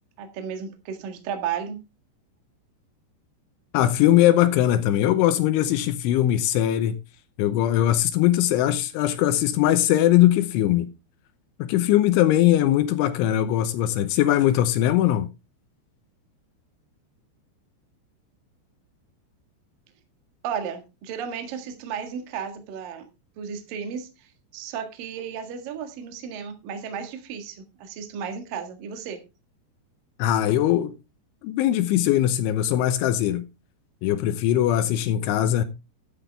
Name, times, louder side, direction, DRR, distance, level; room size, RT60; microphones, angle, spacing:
voice 1, 0.2-1.8 20.4-23.1 23.4-24.3 24.5-29.2, right 7 dB, 55° right, 2.8 m, -34 dB
voice 2, 3.7-7.0 7.4-10.9 11.6-15.3 30.2-30.9 31.4-33.4 34.0-35.6, left 12 dB, 80° left, 3.1 m, -20 dB
13.0 x 9.9 x 3.4 m
omnidirectional pair, 5.8 m